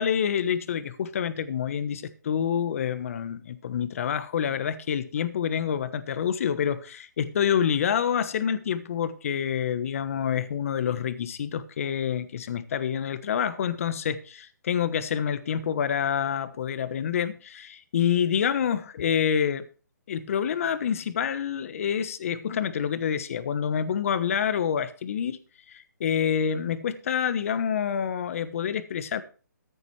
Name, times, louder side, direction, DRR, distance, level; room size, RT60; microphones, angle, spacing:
voice 1, 0.0-19.7 20.1-25.4 25.7-29.2, left 8 dB, 45° left, 1.2 m, -27 dB
14.5 x 9.4 x 3.3 m
hypercardioid pair, 160°, 10 cm